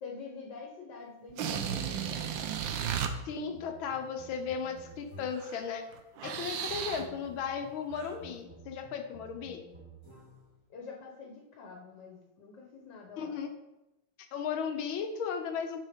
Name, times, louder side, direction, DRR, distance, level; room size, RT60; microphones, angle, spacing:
voice 1, 0.0-2.4 6.9-7.2 10.7-13.4, left 4 dB, 65° left, 0 dB, 1.9 m, -46 dB
sound 1, 1.3-3.1 5.3-5.6 5.9-7.1 8.0-8.2, right 8 dB, 80° right, 1.5 m, -34 dB
sound 2, 1.4-5.6 6.3-10.6, right 1 dB, 10° right, 2.9 m, -53 dB
voice 2, 3.3-5.8 6.2-9.6 13.2-13.5 14.3-15.8, left 6 dB, 85° left, 6 dB, 1.7 m, -35 dB
7.5 x 5.9 x 5.2 m, 0.95 s
omnidirectional pair, 2.1 m